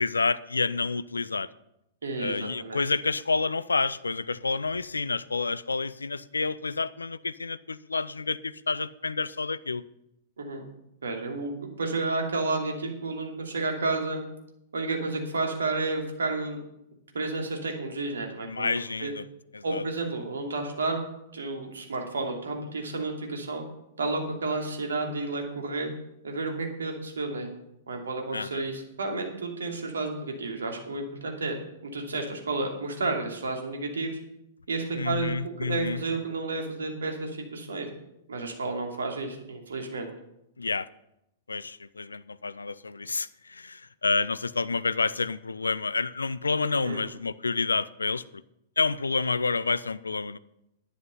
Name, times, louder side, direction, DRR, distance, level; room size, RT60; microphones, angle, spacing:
voice 1, 0.0-1.5 2.2-9.8 18.5-19.3 19.5-19.8 28.3-28.6 35.0-36.0 40.6-40.9 41.5-48.4 48.8-50.4, left 4 dB, 80° left, 0.5 m, -29 dB
voice 2, 2.0-2.8 10.4-10.6 11.0-14.2 14.7-16.6 17.1-18.7 19.0-19.1 19.6-21.0 21.3-23.6 24.0-25.9 26.2-27.5 27.9-31.6 31.8-34.1 34.7-37.9 38.3-40.1 46.8-47.0, right 3 dB, 70° right, 2.7 m, -31 dB
11.0 x 10.0 x 5.6 m
figure-of-eight pair, 105°, 0 cm